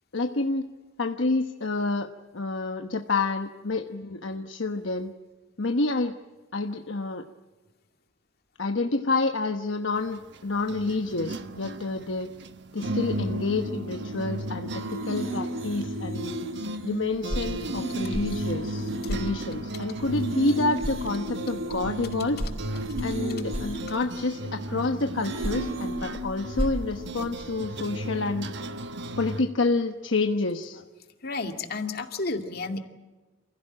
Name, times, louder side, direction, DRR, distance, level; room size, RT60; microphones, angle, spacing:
voice 1, 0.1-0.7 1.0-2.1 2.3-5.1 5.6-6.1 6.5-7.2 8.6-12.3 12.7-16.4 16.8-22.4 23.0-28.5 29.2-30.9, left 3 dB, 65° left, 5 dB, 1.1 m, -28 dB
sound 1, 10.0-29.4, right 1 dB, 60° right, 1.2 m, -36 dB
sound 2, 12.8-14.3 14.7-19.6 19.9-24.8 25.2-27.4 27.8-28.0, right 1 dB, 90° right, 6.8 m, -36 dB
sound 3, 17.1-20.5 20.8-24.3 25.1-27.8, equal, 30° right, 5.1 m, -36 dB
voice 2, 31.2-32.8, left 3 dB, 50° left, 5 dB, 2.3 m, -31 dB
28.5 x 16.0 x 8.8 m, 1.3 s
head